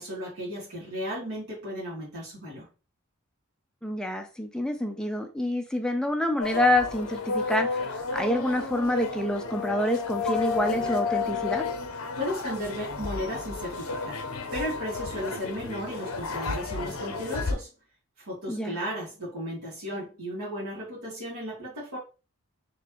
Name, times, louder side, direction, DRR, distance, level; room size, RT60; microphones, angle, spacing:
voice 1, 0.0-2.7 12.2-14.2 14.5-17.7 18.2-22.0, equal, 85° right, 2.0 m, -35 dB
voice 2, 3.8-11.6 18.5-18.8, left 1 dB, 5° left, 0.5 m, -27 dB
sound 1, 6.4-17.5, left 4 dB, 70° left, 0.7 m, -32 dB
4.3 x 3.2 x 3.0 m
head